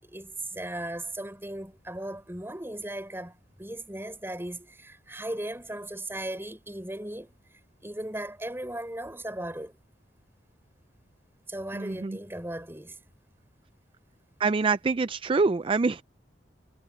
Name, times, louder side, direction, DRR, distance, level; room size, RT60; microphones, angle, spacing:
voice 1, 0.0-7.4 7.8-9.8 11.5-13.0, right 1 dB, 15° right, 6.2 m, -37 dB
voice 2, 11.7-12.2 14.4-16.0, right 4 dB, 30° right, 0.4 m, -25 dB
head